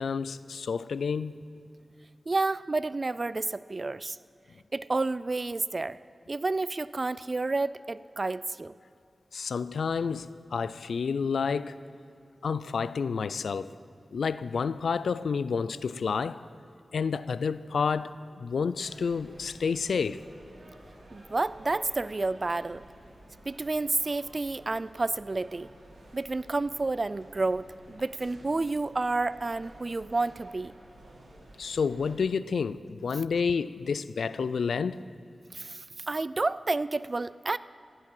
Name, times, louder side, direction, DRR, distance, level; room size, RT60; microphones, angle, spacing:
voice 1, 0.0-1.3 9.3-11.8 12.4-13.7 14.1-16.4 16.9-20.2 31.6-35.0, left 5 dB, 90° left, 0.3 m, -29 dB
voice 2, 2.3-4.2 4.7-6.0 6.3-8.7 21.1-22.8 23.5-25.7 26.1-30.7 35.5-37.6, right 3 dB, 45° right, 0.3 m, -30 dB
sound 1, 18.8-32.1, right 1 dB, 75° right, 2.9 m, -52 dB
15.0 x 10.5 x 5.5 m
cardioid pair, 60°, 0 cm